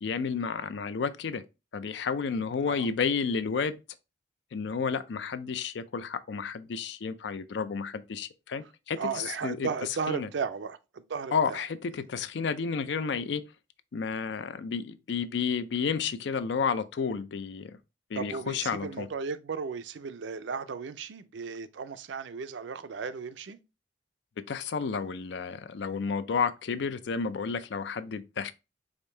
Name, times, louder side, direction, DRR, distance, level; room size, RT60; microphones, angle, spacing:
voice 1, 0.0-1.4 1.7-3.8 4.5-9.7 10.1-10.3 11.3-13.4 13.9-17.8 18.1-19.1 24.5-28.5, left 5 dB, 70° left, 0.4 m, -31 dB
voice 2, 9.0-11.6 18.1-23.6, right 5 dB, 75° right, 0.4 m, -35 dB
5.0 x 2.6 x 3.2 m
head